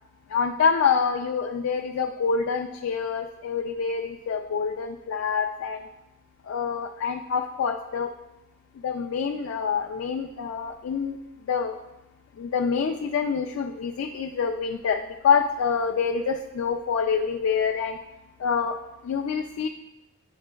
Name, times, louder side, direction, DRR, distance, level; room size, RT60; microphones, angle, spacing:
voice 1, 0.3-5.9 6.5-8.1 8.8-11.2 11.5-11.8 12.4-18.0 18.4-18.8 19.1-19.7, left 6 dB, 75° left, 3 dB, 0.3 m, -26 dB
8.6 x 5.0 x 2.2 m, 0.96 s
head